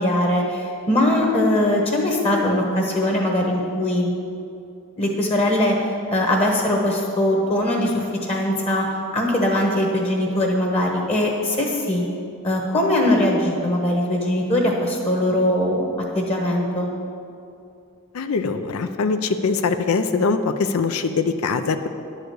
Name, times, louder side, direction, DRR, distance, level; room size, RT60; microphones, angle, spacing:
voice 1, 0.0-4.1 5.0-5.8 6.1-8.9 9.1-12.0 12.4-15.9 16.1-16.9, left 1 dB, 30° left, 0 dB, 1.1 m, -21 dB
voice 2, 18.1-21.9, left 4 dB, 80° left, 8 dB, 0.5 m, -22 dB
10.5 x 4.9 x 7.9 m, 2.5 s
head